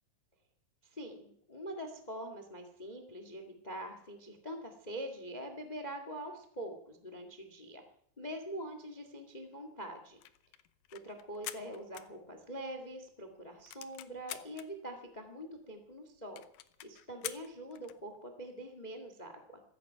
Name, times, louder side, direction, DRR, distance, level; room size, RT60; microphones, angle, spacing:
voice 1, 0.9-7.8 8.2-10.2 10.9-16.4 16.8-19.6, right 1 dB, 50° left, 6 dB, 0.5 m, -44 dB
sound 1, 10.0-12.7 13.1-13.2 13.4-14.7 15.3-15.4 15.6-15.7 15.9-16.0 16.4-18.0, left 14 dB, 85° left, 1.8 m, -46 dB
16.0 x 14.0 x 5.7 m, 0.67 s
omnidirectional pair, 4.6 m